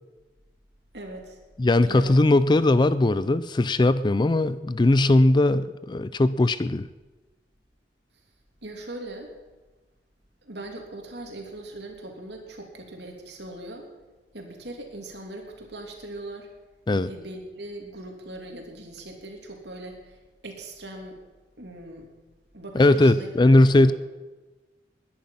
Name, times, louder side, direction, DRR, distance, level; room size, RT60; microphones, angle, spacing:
voice 1, 0.9-1.4 1.9-2.1 8.6-9.3 10.4-13.9 14.3-16.5 17.1-21.2 21.6-22.1 22.5-23.9, right 1 dB, 65° right, 2 dB, 2.9 m, -40 dB
voice 2, 1.6-6.9 16.9-17.1 22.7-23.9, left 2 dB, 25° left, 15 dB, 0.4 m, -19 dB
20.5 x 10.5 x 5.7 m, 1.2 s
head